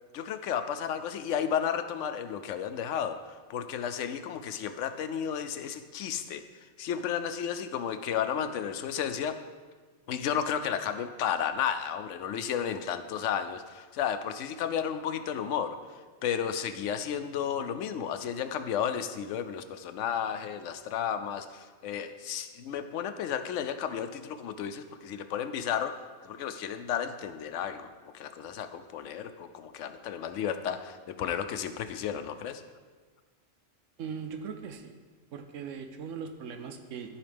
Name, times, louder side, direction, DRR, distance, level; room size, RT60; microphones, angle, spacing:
voice 1, 0.1-6.4 6.8-9.4 10.1-15.8 16.2-25.9 26.2-32.6, left 8 dB, 80° left, 9 dB, 0.9 m, -33 dB
voice 2, 34.0-34.9 35.3-37.2, right 6 dB, 90° right, 7 dB, 1.0 m, -39 dB
14.0 x 4.9 x 3.4 m, 1.4 s
omnidirectional pair, 1.3 m